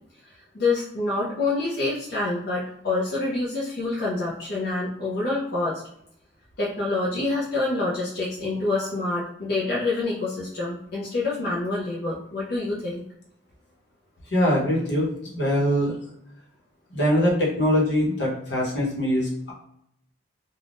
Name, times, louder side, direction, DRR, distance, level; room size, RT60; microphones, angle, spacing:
voice 1, 0.5-5.8 6.6-13.0, left 2 dB, 60° left, -7 dB, 0.6 m, -27 dB
voice 2, 14.3-15.9 16.9-19.5, equal, 80° left, -3 dB, 1.0 m, -23 dB
3.4 x 2.3 x 2.5 m, 0.74 s
head